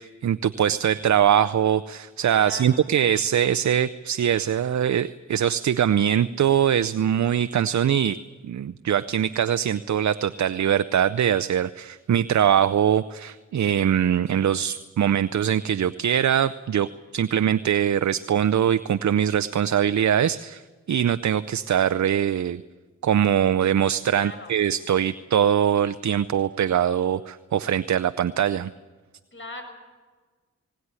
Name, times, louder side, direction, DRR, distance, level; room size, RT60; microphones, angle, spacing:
voice 1, 0.0-8.2 8.4-16.9 17.1-20.6 20.9-22.6 23.0-28.7, right 9 dB, 65° right, 13 dB, 0.6 m, -22 dB
voice 2, 2.3-2.8 24.1-24.6 29.3-29.6, left 2 dB, 40° left, 5 dB, 6.5 m, -39 dB
19.5 x 19.5 x 9.7 m, 1.4 s
cardioid pair, 50°, 30 cm